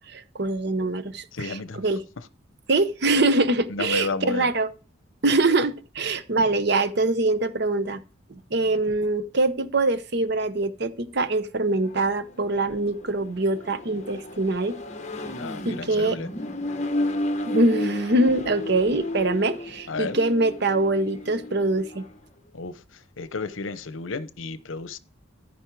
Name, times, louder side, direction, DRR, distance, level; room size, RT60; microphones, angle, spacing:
voice 1, 0.1-2.0 2.7-4.7 5.2-8.0 8.3-14.8 15.6-16.2 17.4-22.1, right 2 dB, 55° right, 0.8 m, -24 dB
voice 2, 1.3-1.8 3.7-4.5 15.3-16.3 19.9-20.2 22.5-25.0, left 3 dB, 75° left, 0.8 m, -32 dB
Accelerating revving vroom, 11.7-22.2, left 1 dB, 35° left, 1.1 m, -33 dB
14.0 x 5.3 x 4.7 m
head